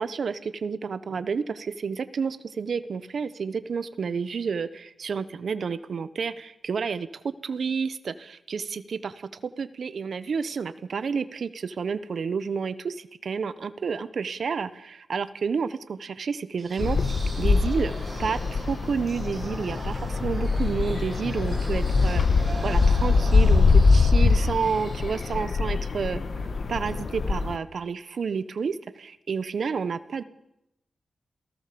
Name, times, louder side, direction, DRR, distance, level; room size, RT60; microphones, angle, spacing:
voice 1, 0.0-17.0 17.4-17.9 18.2-22.2 22.6-26.2 26.7-30.2, right 5 dB, 55° right, 13 dB, 1.1 m, -30 dB
sound 1, 16.6-25.3, right 2 dB, 25° right, 7.3 m, -42 dB
sound 2, 16.8-27.6, left 4 dB, 45° left, 1.3 m, -23 dB
27.5 x 17.5 x 7.0 m, 0.86 s
wide cardioid pair, 175°, 0 cm